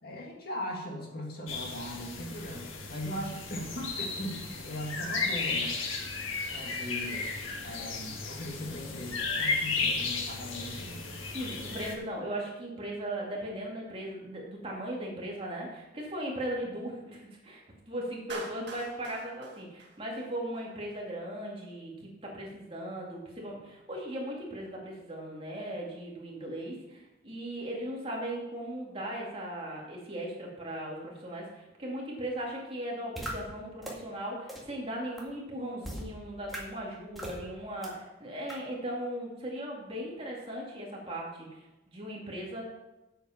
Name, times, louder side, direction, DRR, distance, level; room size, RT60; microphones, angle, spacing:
voice 1, 0.0-5.8 6.5-7.3 7.6-11.1, equal, 50° left, 0 dB, 2.0 m, -39 dB
sound 1, 1.5-12.0, left 4 dB, 80° left, 1.6 m, -34 dB
voice 2, 11.3-42.6, right 1 dB, 30° right, -3 dB, 2.4 m, -38 dB
Clapping, 18.3-20.6, right 3 dB, 60° right, 1.8 m, -45 dB
sound 2, 33.2-33.3 33.8-33.9 34.5-34.6 35.2-35.3 35.8-36.0 36.5-36.6 37.2-37.4 37.8-37.9 38.5-38.6, equal, ahead, 2.0 m, -37 dB
8.2 x 8.0 x 5.8 m, 1.0 s
head